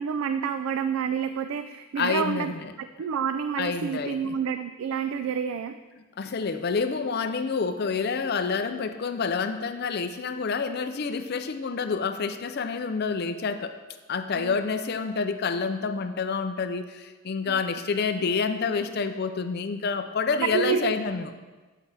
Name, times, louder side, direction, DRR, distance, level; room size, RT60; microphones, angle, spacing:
voice 1, 0.0-2.5 2.8-5.8 14.4-14.6 20.4-20.9, right 7 dB, 75° right, 10 dB, 0.3 m, -28 dB
voice 2, 2.0-2.7 3.6-4.3 6.2-13.8 14.1-21.3, left 5 dB, 50° left, 9 dB, 0.4 m, -28 dB
8.5 x 8.3 x 3.4 m, 1.3 s
head